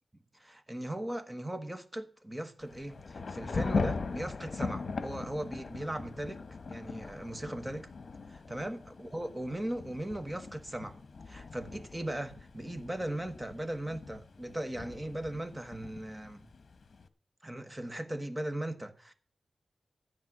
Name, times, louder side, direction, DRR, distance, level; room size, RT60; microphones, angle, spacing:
voice 1, 0.3-6.4 6.7-7.9 8.3-11.0 11.3-16.5 17.4-19.1, right 1 dB, 15° right, 1.2 m, -38 dB
Thunder / Rain, 2.6-17.1, left 4 dB, 60° left, 1.2 m, -40 dB
12.5 x 9.2 x 6.0 m
wide cardioid pair, 95°, 0 cm